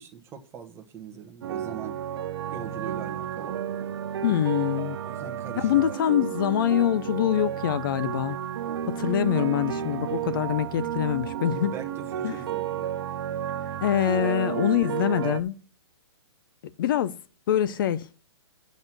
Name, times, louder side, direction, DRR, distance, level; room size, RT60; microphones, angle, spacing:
voice 1, 0.0-2.0 2.5-3.6 5.0-6.0 11.5-12.9, right 7 dB, 15° right, 1.3 m, -41 dB
sound 1, 1.4-15.4, right 10 dB, 55° right, 0.8 m, -32 dB
voice 2, 4.2-5.0 5.6-8.4 8.9-11.7 12.2-12.4 13.8-15.6 16.8-17.2 17.5-18.1, left 11 dB, 45° left, 0.6 m, -24 dB
7.9 x 6.2 x 7.4 m
hypercardioid pair, 145°, 15 cm